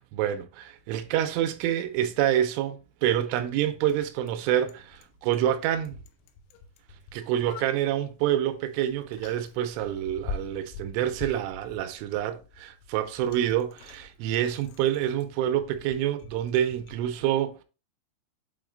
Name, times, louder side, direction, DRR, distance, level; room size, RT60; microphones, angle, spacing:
voice 1, 0.1-6.0 7.1-17.6, right 11 dB, 80° right, 3.0 m, -27 dB
Bicycle, 0.7-17.0, left 4 dB, 80° left, 3.2 m, -46 dB
8.5 x 4.1 x 3.9 m
omnidirectional pair, 6.0 m